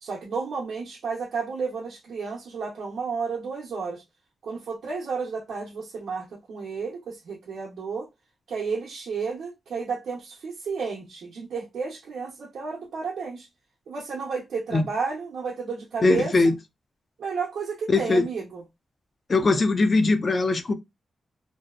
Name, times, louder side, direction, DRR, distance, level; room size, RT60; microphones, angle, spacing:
voice 1, 0.0-4.0 4.4-8.1 8.5-13.5 13.9-16.5 17.2-18.6, right 5 dB, 75° right, 0.7 m, -32 dB
voice 2, 16.0-16.5 17.9-18.2 19.3-20.7, left 3 dB, 35° left, 0.4 m, -20 dB
2.6 x 2.0 x 2.3 m
wide cardioid pair, 130°, 0 cm